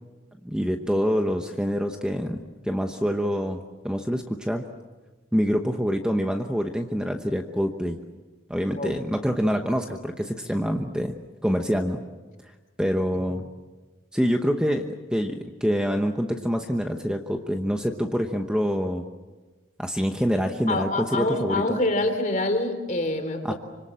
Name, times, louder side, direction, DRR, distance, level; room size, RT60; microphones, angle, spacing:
voice 1, 0.4-4.7 5.3-8.0 8.5-11.1 11.4-12.0 12.8-13.4 14.1-19.1 19.8-21.6 23.4-23.5, equal, 5° right, 4 dB, 1.0 m, -26 dB
voice 2, 20.7-23.5, left 2 dB, 40° left, 7 dB, 3.2 m, -26 dB
26.0 x 25.5 x 7.6 m, 1.3 s
head